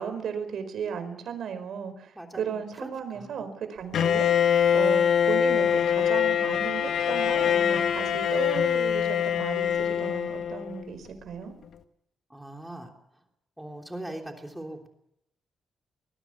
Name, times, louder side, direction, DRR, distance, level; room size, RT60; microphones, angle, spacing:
voice 1, 0.0-4.3 4.7-11.5, right 7 dB, 60° right, 9 dB, 4.9 m, -35 dB
voice 2, 2.1-3.4 4.0-4.4 12.3-12.9 13.6-14.9, right 1 dB, 5° right, 3 dB, 3.2 m, -41 dB
Bowed string instrument, 3.9-10.9, left 8 dB, 65° left, 1.7 m, -24 dB
24.5 x 21.5 x 7.2 m, 0.77 s
cardioid pair, 160°, 0 cm